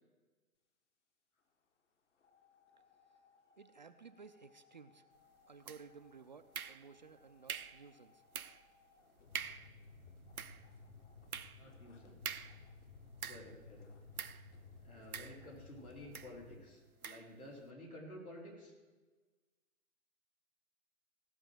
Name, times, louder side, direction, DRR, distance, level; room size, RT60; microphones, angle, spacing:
sound 1, 2.2-16.6, left 4 dB, 55° left, 1.8 m, -59 dB
voice 1, 3.6-5.1 5.5-8.2, right 5 dB, 35° right, 10 dB, 0.4 m, -56 dB
sound 2, 5.7-6.1 6.5-7.1 7.5-7.9 8.3-8.7 9.0-9.1 9.3-9.7 10.2-13.6 14.2-14.5 15.1-15.7 16.1-16.4 17.0-17.3, right 7 dB, 85° right, 0.7 m, -45 dB
voice 2, 11.6-12.4 13.3-13.9 14.3-14.4 14.8-18.7, left 1 dB, 85° left, -2 dB, 4.6 m, -52 dB
17.0 x 6.1 x 7.6 m, 1.3 s
figure-of-eight pair, 120°, 42 cm